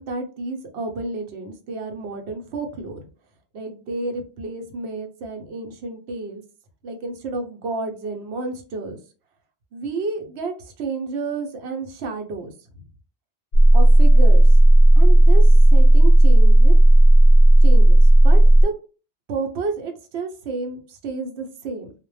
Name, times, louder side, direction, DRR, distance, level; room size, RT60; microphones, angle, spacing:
voice 1, 0.0-3.1 3.5-6.4 6.8-9.0 9.7-12.8 13.7-14.7 15.0-16.8 17.6-18.7 19.3-21.9, right 3 dB, 80° right, 4 dB, 0.9 m, -31 dB
sound 1, 13.5-18.6, right 1 dB, 55° left, 0.5 m, -11 dB
2.1 x 2.0 x 3.1 m, 0.36 s
omnidirectional pair, 1.1 m